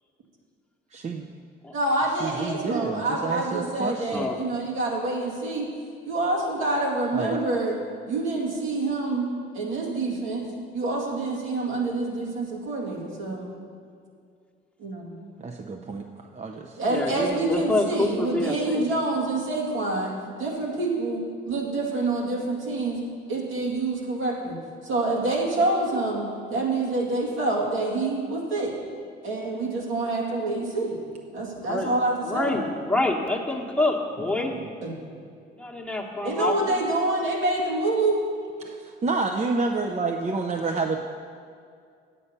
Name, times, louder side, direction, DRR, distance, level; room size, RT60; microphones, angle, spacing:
voice 1, 0.9-1.3 2.2-4.3 7.1-7.5 15.4-16.8 38.6-41.0, right 3 dB, 35° right, 3 dB, 0.6 m, -29 dB
voice 2, 1.7-5.7 6.0-7.8 8.1-9.3 9.5-10.5 10.7-13.5 14.8-15.2 16.8-23.0 23.3-28.7 29.2-31.0 31.3-32.6 34.8-35.0 36.2-38.3, right 2 dB, 85° right, -3 dB, 2.2 m, -27 dB
voice 3, 16.9-18.8 31.6-31.9 32.2-34.5 35.6-36.8, left 2 dB, 5° left, -1 dB, 1.1 m, -27 dB
8.5 x 8.3 x 5.6 m, 2.2 s
cardioid pair, 90°, 20 cm